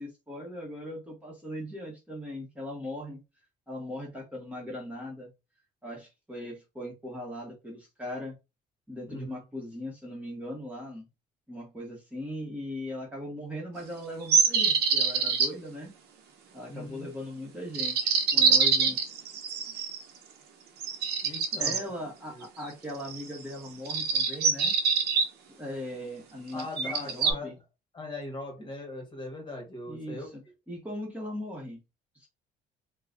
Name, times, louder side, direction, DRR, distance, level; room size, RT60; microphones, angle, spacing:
voice 1, 0.0-3.2 3.7-5.3 5.8-8.4 8.9-11.1 11.5-15.9 16.5-19.0 19.7-19.9 21.6-24.8 25.6-27.5 29.9-30.4 30.7-31.8 32.1-32.3, left 1 dB, 10° right, -3 dB, 1.3 m, -39 dB
voice 2, 9.1-9.4 16.7-17.1 21.2-21.9 22.3-22.5 26.5-27.6 27.9-30.3, left 2 dB, 30° left, 1 dB, 1.5 m, -40 dB
sound 1, 14.3-15.5 17.7-20.0 20.8-21.8 23.0-23.4 23.9-25.3 26.6-27.3, right 5 dB, 75° right, 0.8 m, -24 dB
2.9 x 2.3 x 3.8 m, 0.26 s
cardioid pair, 110°, 17 cm